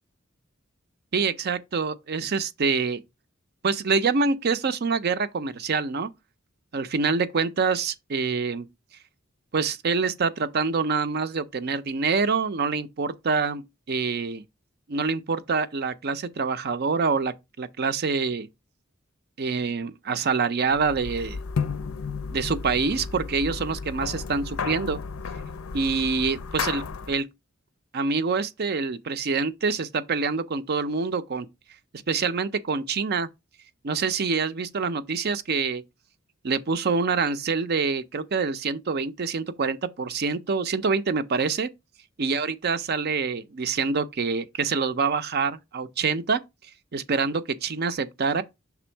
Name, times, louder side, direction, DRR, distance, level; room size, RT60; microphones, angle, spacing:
voice 1, 1.1-3.0 3.6-6.1 6.7-8.7 9.5-13.6 13.9-14.4 14.9-18.5 19.4-21.4 22.3-25.0 25.7-27.3 27.9-31.5 32.1-33.3 33.8-35.8 36.4-41.7 42.2-46.4 46.9-48.4, right 4 dB, 50° right, 0.5 m, -26 dB
sound 1, 20.7-27.2, left 5 dB, 85° left, 0.5 m, -33 dB
6.1 x 3.6 x 4.4 m
head